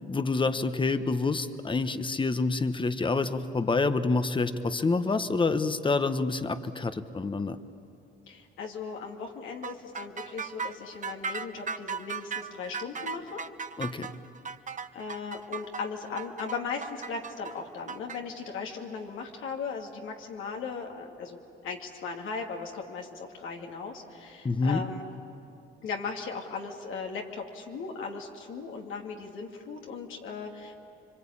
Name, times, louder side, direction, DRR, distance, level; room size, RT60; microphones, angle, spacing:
voice 1, 0.0-7.6 13.8-14.1 24.4-24.8, left 3 dB, 25° left, 10 dB, 1.2 m, -27 dB
voice 2, 8.3-13.4 14.9-25.1 25.8-30.8, left 5 dB, 80° left, 1 dB, 2.6 m, -37 dB
sound 1, 9.6-18.2, right 5 dB, 40° right, 0.9 m, -37 dB
26.5 x 24.0 x 8.7 m, 2.7 s
cardioid pair, 90°, 20 cm